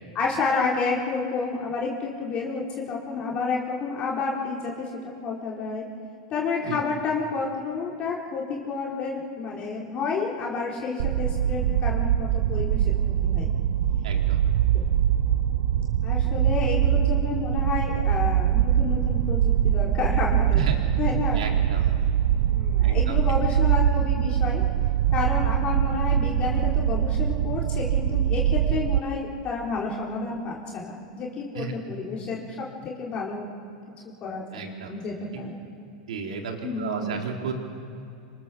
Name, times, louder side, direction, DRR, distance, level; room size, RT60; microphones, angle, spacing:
voice 1, 0.1-5.8 6.3-13.5 16.0-20.7 21.0-21.5 22.5-24.6 25.1-33.5 34.2-34.6 34.9-35.6 36.6-37.2, left 4 dB, 30° left, -3 dB, 4.0 m, -30 dB
sound 1, 11.0-29.0, right 10 dB, 70° right, 0.7 m, -23 dB
voice 2, 14.0-14.4 20.5-20.8 21.3-21.8 22.8-23.2 31.6-31.7 34.5-34.9 36.1-37.5, right 5 dB, 85° right, 2 dB, 3.9 m, -33 dB
26.0 x 26.0 x 7.1 m, 2.6 s
supercardioid pair, 135°, 4 cm